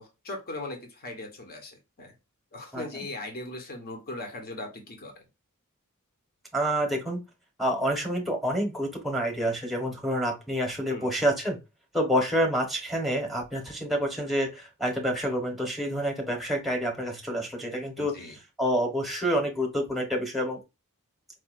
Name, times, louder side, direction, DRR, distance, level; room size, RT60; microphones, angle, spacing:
voice 1, 0.0-2.1 2.5-5.2 10.9-11.1 18.0-18.3, left 2 dB, 45° left, 3 dB, 1.2 m, -39 dB
voice 2, 6.5-7.2 7.6-11.6 11.9-18.2 18.6-20.6, equal, ahead, 2 dB, 1.2 m, -28 dB
4.8 x 2.7 x 2.5 m, 0.25 s
head